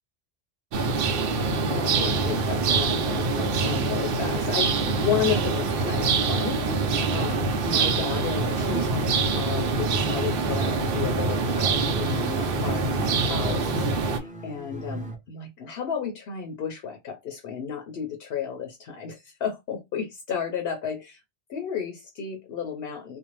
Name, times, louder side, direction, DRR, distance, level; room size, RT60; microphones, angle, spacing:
sound 1, 0.7-14.2, right 4 dB, 65° right, 0.7 m, -25 dB
voice 1, 1.4-21.2 21.5-23.2, left 7 dB, 70° left, 0.8 m, -33 dB
sound 2, 9.6-15.1, right 2 dB, 10° right, 0.4 m, -38 dB
2.6 x 2.0 x 2.9 m
omnidirectional pair, 1.1 m